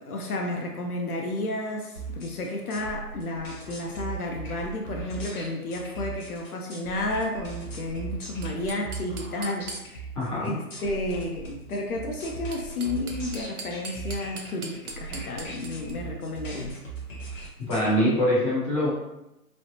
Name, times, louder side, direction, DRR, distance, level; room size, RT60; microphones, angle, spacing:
voice 1, 0.0-10.1 10.4-16.8, left 2 dB, 65° left, 1 dB, 0.6 m, -32 dB
sound 1, 2.0-17.9, right 4 dB, 50° left, 0.9 m, -38 dB
sound 2, 8.4-10.2 12.3-15.9, right 3 dB, 65° right, 0.7 m, -41 dB
voice 2, 10.1-10.5 17.7-18.9, equal, 20° left, -11 dB, 0.7 m, -23 dB
3.1 x 2.1 x 2.7 m, 0.92 s
hypercardioid pair, 160°, 48 cm